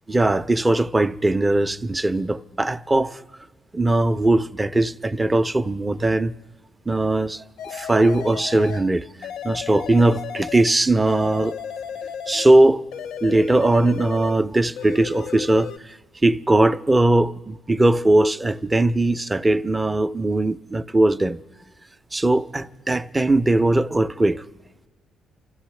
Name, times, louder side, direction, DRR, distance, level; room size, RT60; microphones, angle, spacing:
voice 1, 0.1-3.2 3.7-6.3 6.9-9.0 9.4-11.6 12.3-12.8 13.2-15.7 16.2-21.4 22.1-24.4, right 2 dB, 20° right, 0.5 m, -19 dB
sound 1, 7.6-8.9 9.2-10.7 11.1-12.6 12.9-14.4 14.8-15.8, left 8 dB, 80° left, 0.5 m, -34 dB
29.5 x 13.0 x 3.2 m
cardioid pair, 90°, 0 cm